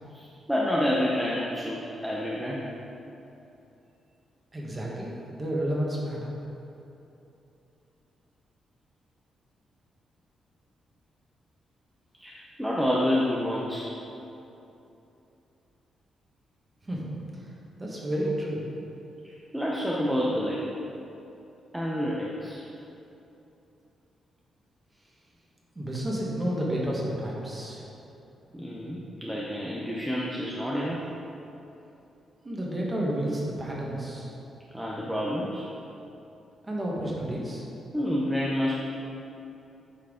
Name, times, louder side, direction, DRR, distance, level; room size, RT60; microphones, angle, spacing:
voice 1, 0.1-2.6 12.2-13.9 19.2-20.6 21.7-22.6 28.5-31.0 34.7-35.7 37.9-38.8, equal, 5° right, -5 dB, 0.7 m, -28 dB
voice 2, 4.5-6.3 16.8-17.5 17.8-18.7 25.7-27.9 32.4-34.3 36.6-37.7, right 1 dB, 20° right, -4 dB, 1.4 m, -31 dB
8.6 x 4.5 x 3.8 m, 2.9 s
cardioid pair, 120°, 0 cm